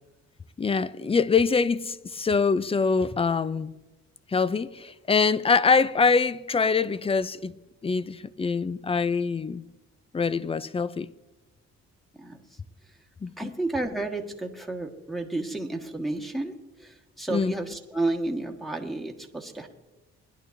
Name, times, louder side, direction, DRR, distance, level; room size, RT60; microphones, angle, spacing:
voice 1, 0.6-3.7 4.3-7.5 7.8-9.6 10.1-11.1 13.2-13.5 17.3-17.6, left 5 dB, 20° left, 0.5 m, -24 dB
voice 2, 13.4-16.5 16.8-19.7, right 2 dB, ahead, 1.7 m, -31 dB
22.0 x 11.0 x 2.7 m
cardioid pair, 90°, 30 cm